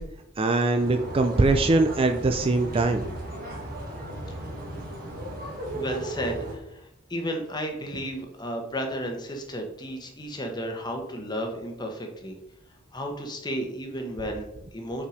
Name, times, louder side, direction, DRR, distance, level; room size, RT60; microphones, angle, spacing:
voice 1, 0.4-3.1, right 2 dB, 25° right, 6 dB, 0.4 m, -22 dB
sound 1, 0.7-6.5, right 1 dB, 45° right, 1.7 m, -36 dB
voice 2, 5.7-12.4 12.9-15.1, equal, 20° left, 3 dB, 1.0 m, -33 dB
5.6 x 4.8 x 5.0 m, 0.83 s
head